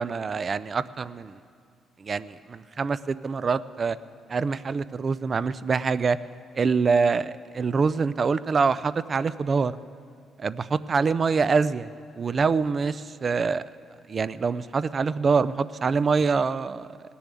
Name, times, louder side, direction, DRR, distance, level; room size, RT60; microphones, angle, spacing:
voice 1, 0.0-1.4 2.0-4.0 4.3-6.2 6.6-9.8 10.4-11.9 12.2-13.6 14.1-16.9, right 5 dB, 40° right, 16 dB, 0.4 m, -25 dB
18.0 x 7.0 x 9.1 m, 2.3 s
cardioid pair, 90°, 0 cm